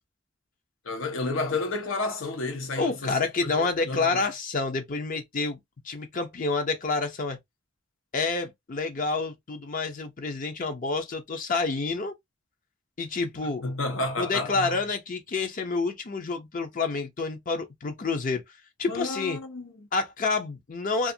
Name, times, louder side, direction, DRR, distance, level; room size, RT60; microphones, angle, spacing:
voice 1, 0.8-4.2 13.4-14.8 18.9-19.9, left 2 dB, 90° left, 0.9 m, -31 dB
voice 2, 2.8-5.6 5.8-7.4 8.1-12.1 13.0-13.6 14.2-18.4 18.8-19.4 19.9-21.1, left 3 dB, 45° left, 0.6 m, -28 dB
2.5 x 2.4 x 2.6 m
head